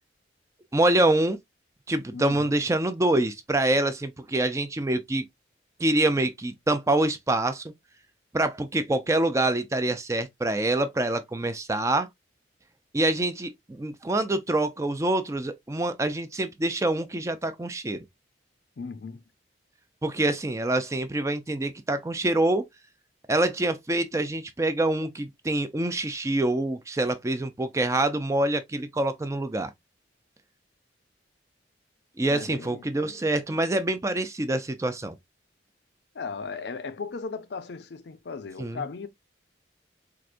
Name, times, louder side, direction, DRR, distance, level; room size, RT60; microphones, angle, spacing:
voice 1, 0.7-1.4 1.9-5.3 5.8-7.7 8.3-12.1 12.9-18.0 20.0-22.6 23.3-29.7 32.2-35.2 38.6-38.8, right 2 dB, 15° right, 0.4 m, -26 dB
voice 2, 2.1-2.6 18.8-19.2 32.3-32.9 36.1-39.1, left 4 dB, 65° left, 0.5 m, -36 dB
4.6 x 2.5 x 2.5 m
head